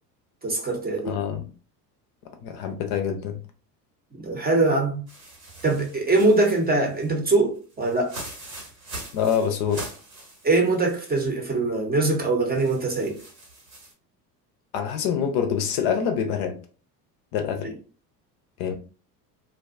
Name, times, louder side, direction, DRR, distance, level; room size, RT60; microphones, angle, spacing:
voice 1, 0.4-1.1 4.1-5.0 5.6-8.2 10.4-13.2 17.6-17.7, right 2 dB, 20° right, 0.7 m, -22 dB
voice 2, 1.1-1.4 2.4-3.4 9.1-9.8 14.7-16.5 17.3-17.7 18.6-18.8, left 7 dB, 50° left, 0.6 m, -25 dB
sound 1, 5.1-11.3 11.7-11.8 12.5-13.9, right 2 dB, 85° right, 1.4 m, -42 dB
2.5 x 2.3 x 2.4 m
hypercardioid pair, 70°, 50 cm